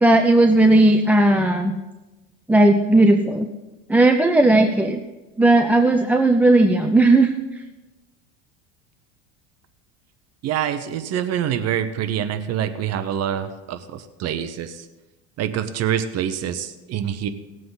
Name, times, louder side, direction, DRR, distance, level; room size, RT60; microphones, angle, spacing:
voice 1, 0.0-1.7 2.5-3.5 3.9-5.0 5.4-7.3, right 2 dB, 5° right, 5 dB, 0.4 m, -16 dB
voice 2, 10.4-14.9 15.4-17.3, right 9 dB, 45° right, 10 dB, 0.8 m, -26 dB
18.5 x 7.6 x 4.0 m, 1.1 s
cardioid pair, 135°, 36 cm